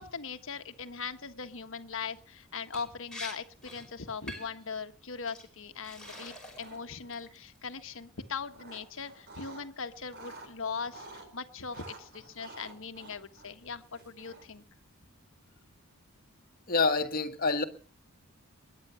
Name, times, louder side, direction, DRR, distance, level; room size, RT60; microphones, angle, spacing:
voice 1, 0.0-14.6, left 5 dB, 60° left, 1.4 m, -40 dB
Liquid, 2.7-2.9 3.1-3.3 3.6-3.9 4.3-4.6 5.3-5.4 5.8-6.8 7.1-7.6, left 1 dB, 5° left, 5.5 m, -44 dB
sound 1, 5.9-6.3 6.6-7.2 8.1-9.6 10.0-11.3 11.7-14.6, right 2 dB, 50° right, 4.1 m, -50 dB
voice 2, 16.7-17.6, left 4 dB, 40° left, 1.6 m, -27 dB
21.5 x 9.7 x 6.9 m
head